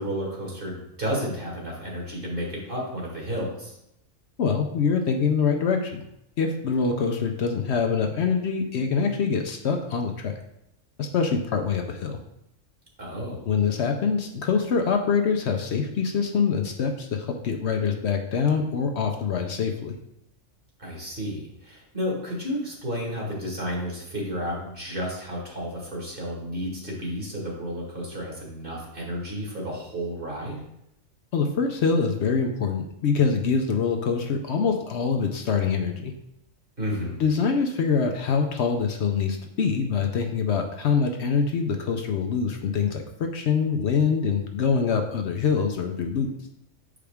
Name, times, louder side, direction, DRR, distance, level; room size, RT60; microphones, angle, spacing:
voice 1, 0.0-3.8 13.0-13.5 20.8-30.6 36.8-37.2, equal, 45° right, -3 dB, 2.0 m, -32 dB
voice 2, 4.4-6.0 6.4-10.3 11.0-12.2 13.5-19.9 31.3-36.1 37.2-46.3, left 5 dB, 65° left, 4 dB, 0.9 m, -24 dB
6.8 x 5.0 x 3.4 m, 0.81 s
omnidirectional pair, 1.3 m